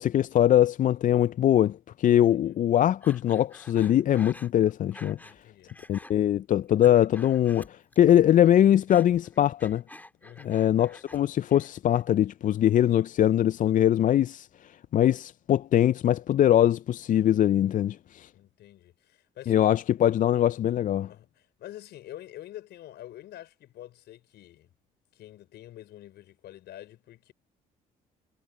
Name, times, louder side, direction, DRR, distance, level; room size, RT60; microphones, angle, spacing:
voice 1, 0.0-5.2 5.9-9.8 10.4-14.5 14.9-18.3 19.5-21.1, left 11 dB, 45° left, 0.4 m, -22 dB
Breathing, 3.0-5.4 5.7-6.1 6.6-8.1 8.4-11.2 11.5-12.1, left 1 dB, 10° left, 2.2 m, -49 dB
voice 2, 5.2-5.8 10.2-10.6 18.3-19.5 21.1-24.7 25.1-27.3, left 13 dB, 70° left, 5.0 m, -47 dB
supercardioid pair, 65°, 18 cm